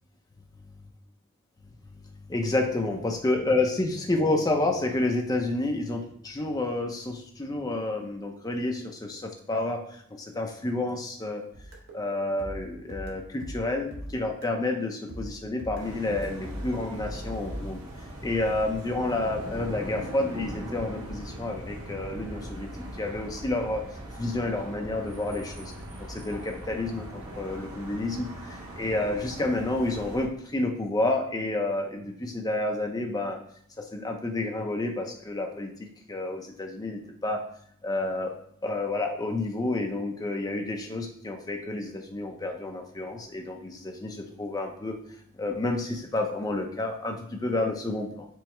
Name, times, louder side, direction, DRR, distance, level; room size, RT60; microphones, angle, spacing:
voice 1, 2.3-9.2 9.5-9.8 10.3-11.4 11.9-17.8 18.2-22.7 23.0-23.8 24.2-25.7 26.1-27.1 27.4-33.4 33.9-35.7 36.1-37.4 37.8-38.3 38.6-44.9 45.4-48.3, left 2 dB, 15° left, 2 dB, 0.4 m, -29 dB
sound 1, 11.5-14.7 15.1-17.7, equal, 55° right, 0.8 m, -40 dB
sound 2, 15.8-30.3, right 1 dB, 85° right, 1.1 m, -40 dB
4.6 x 2.1 x 4.3 m, 0.66 s
head